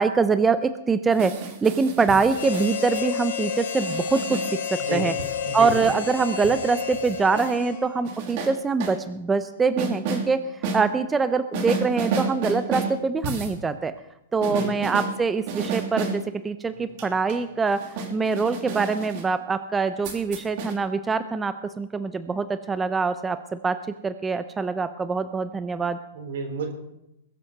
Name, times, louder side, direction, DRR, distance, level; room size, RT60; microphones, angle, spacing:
voice 1, 0.0-1.3 1.6-4.4 4.7-5.1 5.5-10.4 10.7-13.9 14.3-17.8 18.1-23.8 24.0-26.0, right 4 dB, 10° right, 11 dB, 0.6 m, -24 dB
sound 1, 1.1-3.0 3.8-4.5 5.2-6.0 6.4-7.5 8.0-9.0 9.8-10.2 10.6-10.8 11.5-13.0 13.2-13.6 14.4-15.1 15.5-16.2 16.7-19.3 20.0-20.7, right 4 dB, 50° right, 3.0 m, -31 dB
Harmonica, 2.3-8.1, left 7 dB, 85° left, 1.9 m, -31 dB
voice 2, 14.4-14.7 26.1-26.7, right 4 dB, 75° right, 3 dB, 4.0 m, -31 dB
21.5 x 7.5 x 6.6 m, 0.86 s
hypercardioid pair, 145°, 0 cm